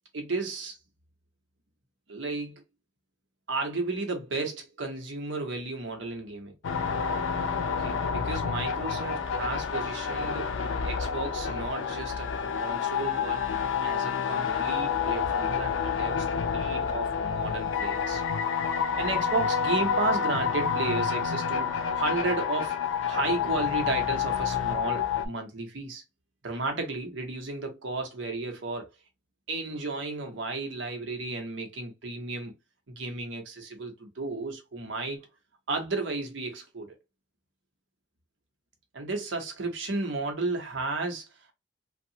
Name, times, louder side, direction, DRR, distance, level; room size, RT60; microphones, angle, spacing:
voice 1, 0.1-0.8 2.1-2.6 3.5-6.6 7.7-10.5 10.8-13.4 13.8-18.2 19.0-22.8 23.1-26.0 26.4-28.9 29.5-32.5 32.9-35.2 35.7-37.0 38.9-41.2, right 3 dB, 75° right, 0.9 m, -33 dB
sound 1, 6.6-25.3, left 6 dB, 85° left, 0.4 m, -29 dB
2.8 x 2.3 x 2.7 m
head